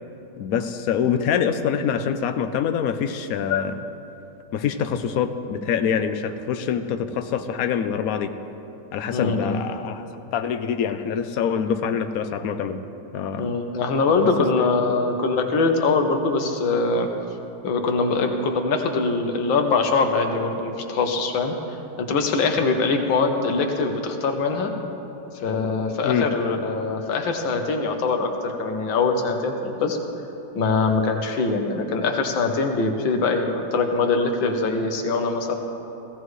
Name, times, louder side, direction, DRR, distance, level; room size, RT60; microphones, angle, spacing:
voice 1, 0.4-3.8 4.5-8.3 8.9-10.0 10.3-12.8 13.1-13.5 14.6-14.7 26.0-26.3, left 7 dB, 65° left, 9 dB, 0.9 m, -25 dB
voice 2, 9.1-9.6 13.4-17.1 17.6-21.6 22.0-24.7 25.4-30.0 30.6-35.6, left 4 dB, 90° left, 4 dB, 1.8 m, -23 dB
17.0 x 16.0 x 3.2 m, 2.9 s
omnidirectional pair, 2.0 m